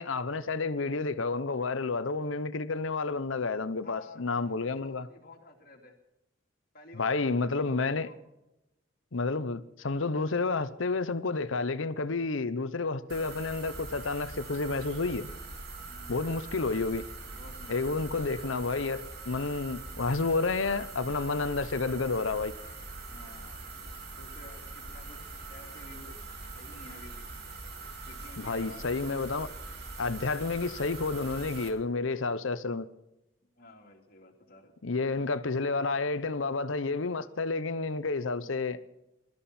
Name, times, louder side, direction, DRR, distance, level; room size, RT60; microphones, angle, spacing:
voice 1, 0.0-5.1 6.9-8.1 9.1-15.3 16.1-17.0 17.7-22.5 28.4-29.5 30.0-32.9 34.8-38.8, left 3 dB, 80° left, 0.8 m, -30 dB
voice 2, 3.8-6.0 6.7-8.2 15.8-16.7 17.3-18.1 23.1-23.6 24.2-26.2 26.5-27.3 28.1-29.2 33.6-34.7 38.3-38.5, left 2 dB, 45° left, 2.7 m, -52 dB
sound 1, 13.1-31.7, right 3 dB, 55° right, 2.5 m, -43 dB
23.0 x 13.5 x 4.3 m
head